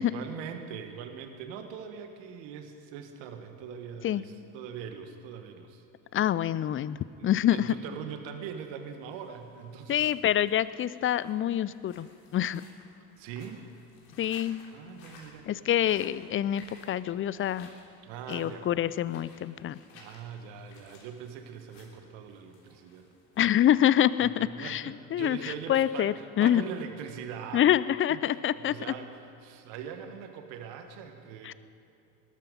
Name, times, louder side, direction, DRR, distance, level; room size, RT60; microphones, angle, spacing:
voice 1, 0.0-5.8 7.2-10.1 13.2-13.6 14.7-15.8 18.0-18.7 19.9-23.1 24.2-27.6 28.1-28.2 28.5-29.1 29.4-31.5, right 7 dB, 65° right, 6 dB, 1.7 m, -42 dB
voice 2, 6.1-7.0 7.2-7.8 9.9-12.1 12.3-12.6 14.2-14.6 15.5-17.7 18.3-19.8 23.4-26.6 27.5-28.7 31.4-31.5, left 11 dB, 25° left, 17 dB, 0.4 m, -26 dB
sound 1, 8.4-24.1, left 3 dB, 65° left, 3.4 m, -57 dB
19.5 x 12.5 x 5.3 m, 2.8 s
hypercardioid pair, 70°, 48 cm